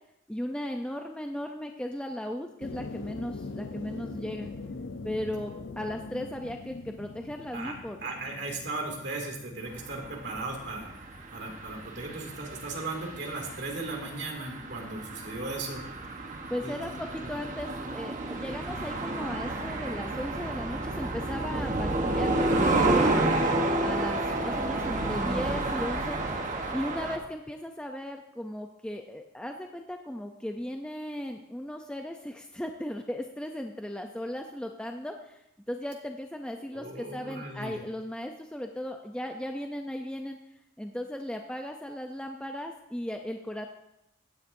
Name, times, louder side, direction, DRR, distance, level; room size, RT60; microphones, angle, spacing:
voice 1, 0.3-4.5 5.0-8.1 16.2-23.3 23.8-26.2 26.7-35.4 35.7-40.4 40.8-43.7, left 1 dB, 5° left, 3 dB, 0.5 m, -36 dB
sound 1, 2.6-10.3, left 3 dB, 65° left, 0.6 m, -42 dB
voice 2, 8.0-10.9 11.3-15.8 16.6-16.9 17.2-17.3 36.7-37.7, right 2 dB, 55° right, 0 dB, 2.4 m, -37 dB
sound 2, 9.7-27.2, right 2 dB, 40° right, 1.0 m, -30 dB
15.5 x 9.7 x 2.6 m, 0.83 s
head